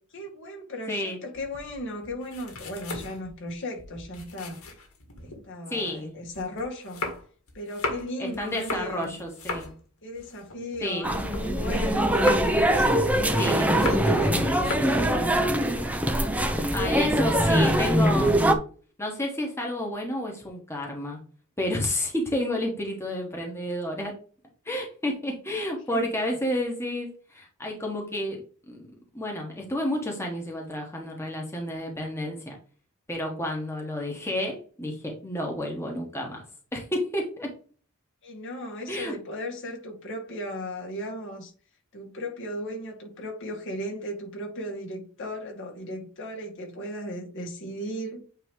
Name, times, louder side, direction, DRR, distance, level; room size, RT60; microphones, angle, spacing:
voice 1, 0.1-4.6 5.2-7.2 7.5-9.2 10.0-12.2 12.6-15.5 16.1-17.8 25.9-26.1 38.2-41.5 41.9-48.2, equal, 60° left, 2.1 m, -36 dB
sound 1, 1.3-5.4 5.8-11.7 11.9-14.3 14.5-15.0, left 2 dB, 85° left, 1.9 m, -36 dB
voice 2, 5.7-6.2 8.2-9.7 10.8-11.1 13.4-13.7 16.7-18.4 19.0-21.2 21.6-24.1 24.6-28.8 29.1-32.5 33.1-36.4 36.7-37.5 38.9-39.2, left 1 dB, 10° left, 1.3 m, -30 dB
sound 2, 11.0-18.5, right 1 dB, 5° right, 0.7 m, -23 dB
9.0 x 3.1 x 3.7 m
head